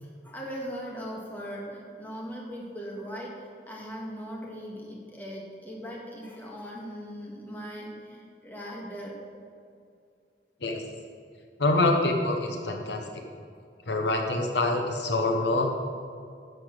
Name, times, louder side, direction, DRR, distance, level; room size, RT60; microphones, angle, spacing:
voice 1, 0.0-9.2, equal, 10° left, -3 dB, 2.0 m, -39 dB
voice 2, 11.6-13.2 13.9-15.7, left 2 dB, 75° left, 3 dB, 1.1 m, -25 dB
11.0 x 7.0 x 6.6 m, 2.4 s
head